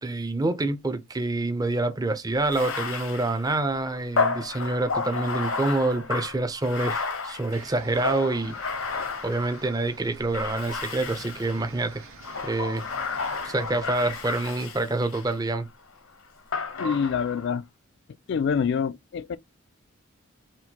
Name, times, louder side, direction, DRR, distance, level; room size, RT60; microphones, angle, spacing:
voice 1, 0.0-8.6 9.2-12.0 12.4-12.8 13.4-15.7, right 2 dB, 20° right, 0.5 m, -27 dB
Bathtub (filling or washing), 2.4-9.8 10.3-11.6 12.2-15.4 16.5-17.5, left 4 dB, 70° left, 0.8 m, -32 dB
sound 1, 7.5-14.4, right 3 dB, 85° right, 1.0 m, -47 dB
voice 2, 16.8-17.6 18.3-19.4, left 6 dB, 55° left, 0.3 m, -26 dB
4.4 x 2.1 x 2.8 m
head